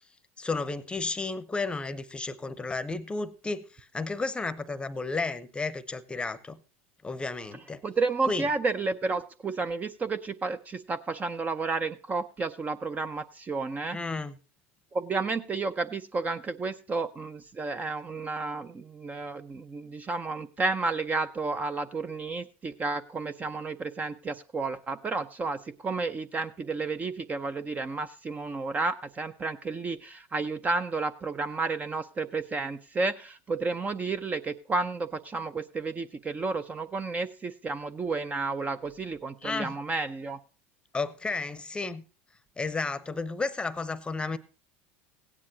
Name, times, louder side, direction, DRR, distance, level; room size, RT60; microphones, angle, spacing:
voice 1, 0.4-6.6 7.0-7.8 8.2-8.5 13.9-14.4 39.4-39.7 40.9-42.0 42.6-44.4, left 3 dB, 15° left, 0.8 m, -32 dB
voice 2, 7.8-14.0 14.9-40.4, right 3 dB, 25° right, 0.6 m, -31 dB
16.0 x 9.9 x 2.8 m
hypercardioid pair, 100°, 7 cm